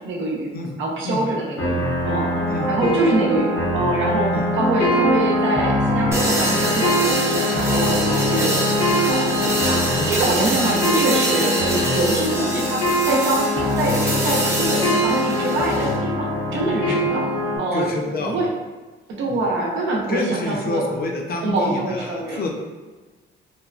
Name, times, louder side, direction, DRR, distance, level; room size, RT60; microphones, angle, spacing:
voice 1, 0.0-0.5 0.8-8.5 8.8-9.3 9.7-17.3 17.6-17.9 18.2-18.5 19.1-20.8 21.4-22.4, right 2 dB, 75° right, -2 dB, 0.7 m, -24 dB
voice 2, 0.5-1.4 2.5-2.9 4.3-4.5 8.0-8.8 10.0-10.2 16.9-17.0 17.7-18.4 19.3-19.5 20.1-22.5, left 2 dB, 50° left, 2 dB, 0.5 m, -29 dB
sound 1, 1.6-17.6, left 1 dB, 70° left, 1.0 m, -22 dB
sound 2, 6.1-16.0, right 1 dB, 15° right, 0.6 m, -25 dB
3.0 x 2.2 x 2.4 m, 1.3 s
cardioid pair, 90°, 20 cm